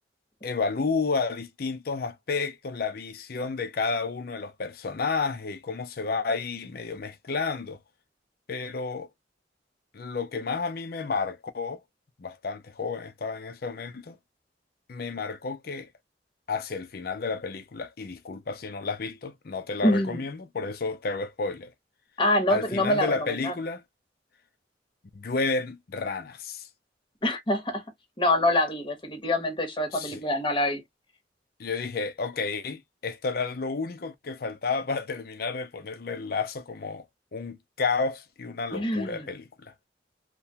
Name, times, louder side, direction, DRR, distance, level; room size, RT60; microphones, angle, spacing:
voice 1, 0.4-7.8 8.5-9.1 9.9-11.8 12.2-14.2 14.9-15.9 16.5-21.7 22.5-23.8 25.1-26.7 29.9-30.2 31.6-37.0 37.3-39.7, left 4 dB, 55° left, 0.6 m, -31 dB
voice 2, 19.8-20.2 22.2-23.5 27.2-27.8 28.2-30.8 38.7-39.3, left 1 dB, 30° left, 0.9 m, -25 dB
3.0 x 2.1 x 2.8 m
head